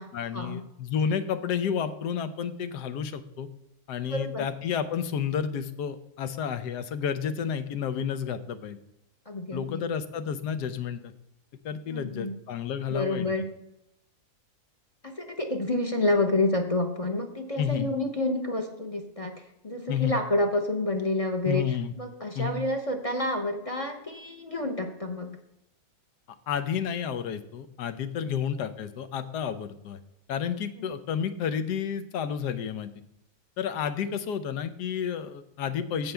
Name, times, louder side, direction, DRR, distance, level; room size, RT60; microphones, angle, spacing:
voice 1, 0.1-3.5 3.9-8.8 9.5-11.1 11.6-13.3 17.6-17.9 19.9-20.2 21.5-21.9 22.3-22.6 26.5-30.0 30.3-32.9 33.6-36.1, left 8 dB, 85° left, 11 dB, 1.3 m, -31 dB
voice 2, 4.1-4.5 9.3-9.8 11.9-12.3 12.9-13.5 15.0-25.4 30.8-30.9, left 2 dB, 30° left, 4 dB, 0.7 m, -29 dB
15.5 x 5.5 x 3.4 m, 0.84 s
omnidirectional pair, 1.7 m